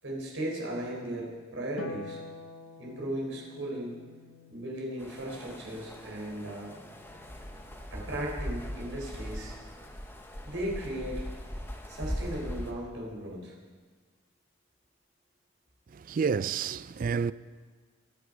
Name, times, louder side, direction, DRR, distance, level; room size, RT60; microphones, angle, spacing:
voice 1, 0.0-2.2 2.8-4.0 4.5-6.7 7.9-9.5 10.5-11.2 11.9-13.6, right 1 dB, 70° right, 4.2 m, -36 dB
Harp, 1.8-8.3 9.9-10.9, left 3 dB, 80° left, 0.9 m, -49 dB
sound 1, 5.0-12.7, equal, 10° left, 1.1 m, -40 dB
voice 2, 15.9-17.3, right 6 dB, 45° right, 0.3 m, -29 dB
22.5 x 8.0 x 5.2 m
head